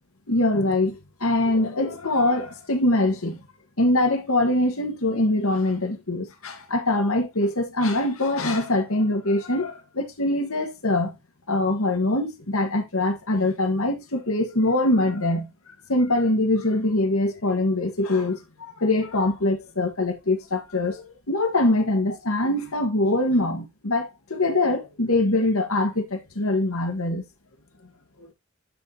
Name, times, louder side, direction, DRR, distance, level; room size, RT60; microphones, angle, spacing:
voice 1, 0.3-3.4 3.8-11.1 11.5-15.5 15.9-27.2 28.2-28.3, left 2 dB, 85° left, 1.8 m, -23 dB
12.0 x 4.1 x 2.9 m
head